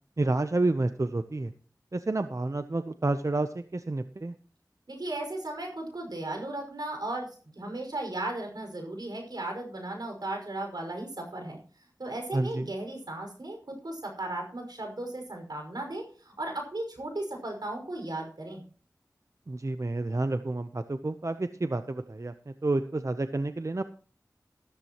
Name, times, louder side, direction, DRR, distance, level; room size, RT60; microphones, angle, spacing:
voice 1, 0.2-1.5 1.9-4.3 12.3-12.7 19.5-23.8, right 2 dB, 50° right, 10 dB, 0.7 m, -29 dB
voice 2, 4.9-7.3 7.6-11.6 12.0-18.6, right 2 dB, 80° right, 3 dB, 5.4 m, -36 dB
14.5 x 13.5 x 3.0 m, 0.41 s
wide cardioid pair, 55°, 7 cm